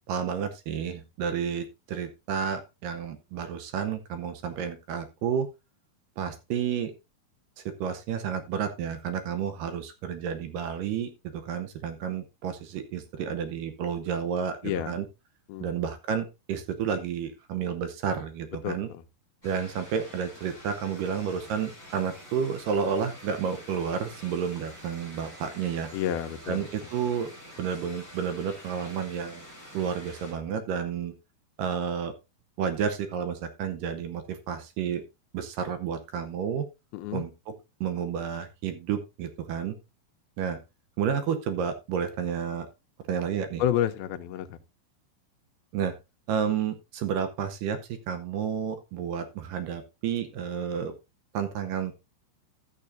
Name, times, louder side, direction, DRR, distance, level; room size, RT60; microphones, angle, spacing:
voice 1, 0.1-5.5 6.2-6.9 7.6-15.1 15.6-18.9 19.4-25.9 26.5-27.3 27.6-29.5 29.7-31.1 31.6-32.1 32.6-35.0 35.3-36.7 37.1-39.8 40.4-40.6 41.0-42.7 43.1-43.6 45.7-46.0 46.3-50.9 51.3-51.9, right 7 dB, 75° right, 2.2 m, -31 dB
voice 2, 14.6-15.0 15.5-15.7 18.6-19.0 25.9-26.7 36.9-37.2 43.6-44.6, left 10 dB, 80° left, 2.5 m, -30 dB
sound 1, 19.4-30.3, equal, 5° right, 5.1 m, -47 dB
13.5 x 7.4 x 2.6 m
omnidirectional pair, 4.4 m